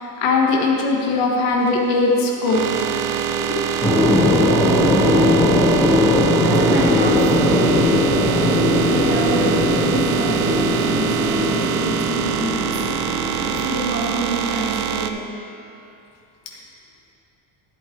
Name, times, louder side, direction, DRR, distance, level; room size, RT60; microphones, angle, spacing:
voice 1, 0.0-2.7 3.4-3.6 4.0-4.1, left 3 dB, 90° left, -1 dB, 1.4 m, -20 dB
sound 1, 1.6-15.1, right 9 dB, 60° right, 0.6 m, -24 dB
sound 2, 3.8-13.7, left 1 dB, 5° left, 1.3 m, -19 dB
voice 2, 6.4-7.9 8.9-12.8 13.4-15.4, right 1 dB, 25° right, -6 dB, 2.0 m, -27 dB
11.5 x 8.1 x 3.2 m, 2.7 s
cardioid pair, 160°, 41 cm